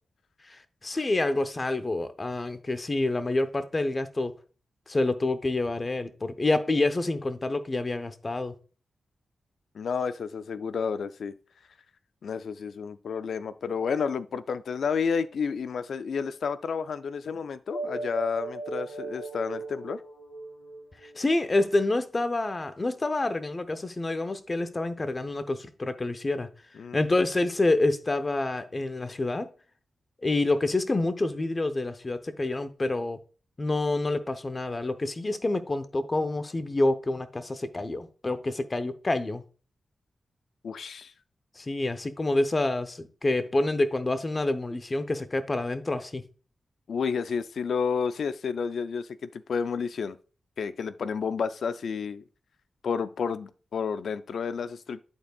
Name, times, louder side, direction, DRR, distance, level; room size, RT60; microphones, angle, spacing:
voice 1, 0.4-4.3 4.9-8.5 21.0-26.5 26.9-29.5 30.2-33.2 33.6-39.4 41.6-46.2, left 2 dB, 35° left, 0.8 m, -27 dB
voice 2, 9.7-11.3 12.2-20.0 26.8-27.0 40.6-41.1 46.9-50.2 50.6-52.2 52.8-55.0, left 6 dB, 80° left, 0.3 m, -31 dB
sound 1, 17.7-21.6, right 2 dB, 60° left, 2.4 m, -37 dB
11.0 x 4.4 x 2.3 m
cardioid pair, 55°, 0 cm